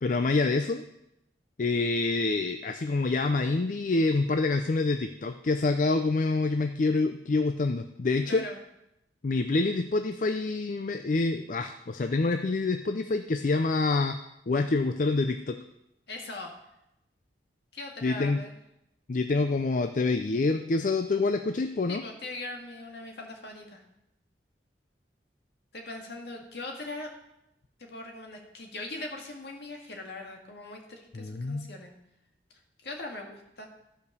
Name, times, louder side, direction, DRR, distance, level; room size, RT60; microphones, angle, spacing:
voice 1, 0.0-0.8 1.6-8.4 9.2-14.2 14.5-15.6 18.0-18.4 19.1-22.0 31.1-31.7, left 3 dB, 45° left, 7 dB, 0.4 m, -26 dB
voice 2, 8.2-8.6 16.1-16.5 17.7-18.6 21.9-23.8 25.7-27.1 27.8-31.9 32.8-33.7, left 2 dB, 65° left, 2 dB, 1.9 m, -40 dB
13.5 x 5.2 x 6.7 m, 0.86 s
head